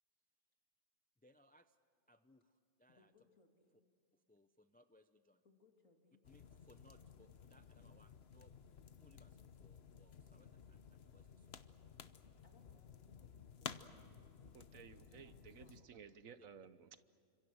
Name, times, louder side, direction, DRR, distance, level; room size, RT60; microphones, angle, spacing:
voice 1, 1.2-1.8 2.1-3.1 4.1-5.4 6.3-8.5 9.0-11.6 14.7-14.8 16.4-16.5, equal, 10° left, 9 dB, 0.5 m, -69 dB
voice 2, 2.9-3.7 5.4-6.2 12.4-15.3 15.6-16.2, left 3 dB, 90° left, 2 dB, 3.3 m, -72 dB
sound 1, 6.2-15.8, left 7 dB, 55° left, 1.1 m, -55 dB
voice 3, 14.5-17.0, right 7 dB, 85° right, 12 dB, 1.4 m, -57 dB
29.5 x 26.0 x 6.4 m, 2.5 s
omnidirectional pair, 1.4 m